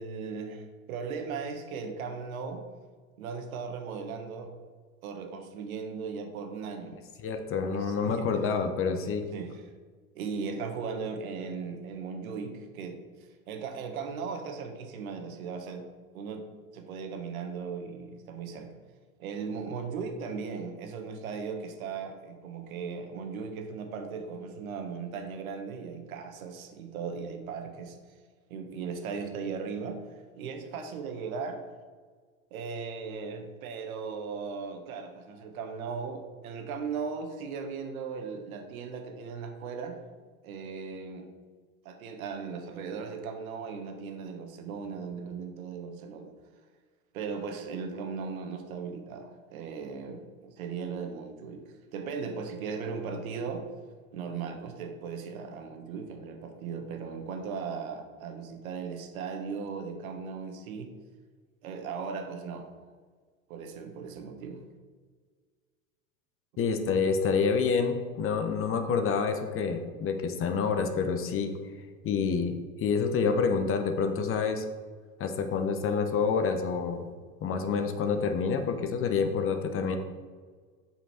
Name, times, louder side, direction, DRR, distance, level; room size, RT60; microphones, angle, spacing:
voice 1, 0.0-2.6 3.2-4.5 5.0-6.9 7.7-8.5 8.9-9.0 9.3-9.6 10.1-13.0 13.5-15.8 16.1-16.4 16.7-18.7 19.2-28.0 28.5-30.0 30.4-31.6 32.5-40.0 40.4-41.3 41.8-46.3 47.1-51.6 51.9-53.6 54.1-60.9 61.6-62.7 63.5-64.6, right 5 dB, 75° right, 5 dB, 1.4 m, -37 dB
voice 2, 7.2-9.2 66.6-71.5 72.0-74.6 75.2-77.1 77.4-80.0, left 5 dB, 30° left, 7 dB, 0.9 m, -28 dB
7.3 x 5.7 x 4.3 m, 1.5 s
hypercardioid pair, 105°, 42 cm